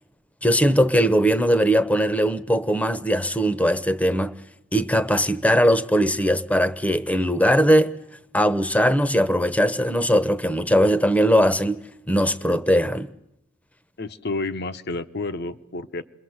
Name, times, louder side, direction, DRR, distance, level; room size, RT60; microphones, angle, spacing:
voice 1, 0.4-4.3 4.7-7.9 8.3-13.1, equal, 5° left, 1.0 m, -20 dB
voice 2, 14.0-16.0, left 3 dB, 55° left, 1.1 m, -30 dB
28.5 x 22.0 x 8.0 m
head